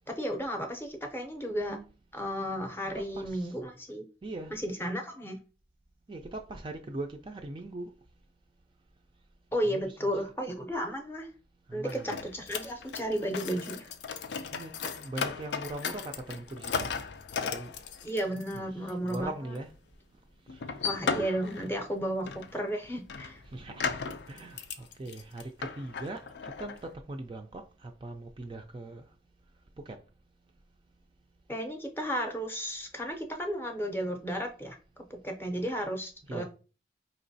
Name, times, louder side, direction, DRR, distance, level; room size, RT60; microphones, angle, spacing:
voice 1, 0.1-1.8 2.1-4.1 4.5-5.4 9.5-11.3 11.7-13.9 18.0-19.3 20.8-23.4 31.5-36.4, equal, 15° left, 0.6 m, -33 dB
voice 2, 2.9-3.5 4.2-4.5 6.1-7.9 9.6-10.2 11.7-12.3 14.5-16.9 17.4-17.8 18.2-19.7 20.5-20.6 23.5-24.0 24.3-29.1 29.9-30.0 36.3-36.4, right 2 dB, 30° right, 0.3 m, -41 dB
sound 1, 11.9-18.6 18.9-19.2 19.5-19.6 20.5-21.9 22.2-22.6 22.8-26.9, left 5 dB, 80° left, 0.4 m, -36 dB
4.3 x 3.0 x 2.7 m
head